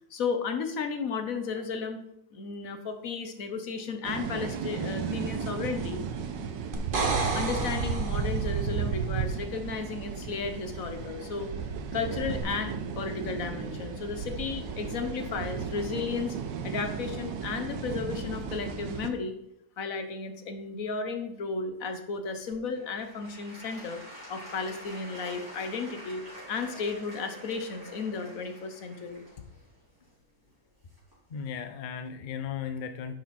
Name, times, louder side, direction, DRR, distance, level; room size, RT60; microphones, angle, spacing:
voice 1, 0.1-2.0 2.3-6.0 7.3-11.5 11.9-16.4 16.6-19.3 19.8-24.0 24.3-26.2 26.5-29.2, left 5 dB, 55° left, 7 dB, 1.3 m, -34 dB
sound 1, 4.0-19.1, right 6 dB, 80° right, 1.5 m, -34 dB
sound 2, 6.7-8.7 12.4-12.5, right 3 dB, 35° right, 1.0 m, -31 dB
Applause / Crowd, 22.5-31.4 32.0-32.1, equal, 10° right, 4.5 m, -47 dB
voice 2, 31.3-33.1, left 7 dB, 75° left, 8 dB, 0.4 m, -36 dB
10.5 x 6.4 x 4.3 m, 0.78 s
omnidirectional pair, 1.9 m